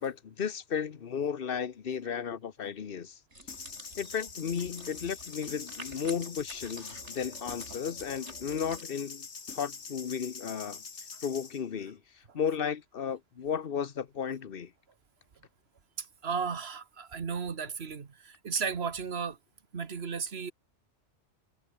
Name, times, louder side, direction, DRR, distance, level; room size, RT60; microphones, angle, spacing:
voice 1, 0.0-3.2 4.0-9.3 9.5-10.8 11.2-12.0 12.3-14.7, left 7 dB, 55° left, 1.2 m, -34 dB
sound 1, 3.3-8.8, right 1 dB, 75° right, 7.6 m, -49 dB
sound 2, 3.5-11.6, left 5 dB, 75° left, 2.1 m, -44 dB
voice 2, 16.0-19.4 19.7-20.5, right 5 dB, 60° right, 1.7 m, -34 dB
omnidirectional pair, 1.2 m